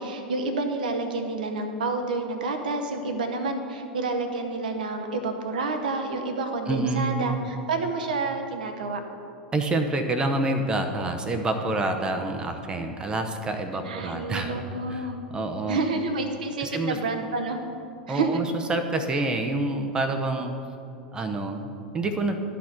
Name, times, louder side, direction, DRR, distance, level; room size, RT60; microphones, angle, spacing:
voice 1, 0.0-9.0 13.8-15.2 15.7-17.6 18.1-18.4 19.1-19.2, right 3 dB, 65° right, 5 dB, 0.8 m, -29 dB
voice 2, 6.7-7.5 9.5-14.5 14.9-15.1 15.3-15.8 16.6-17.0 18.1-20.5 21.1-22.4, right 2 dB, 15° right, 5 dB, 0.7 m, -27 dB
11.5 x 4.2 x 5.8 m, 2.6 s
figure-of-eight pair, 85°, 5 cm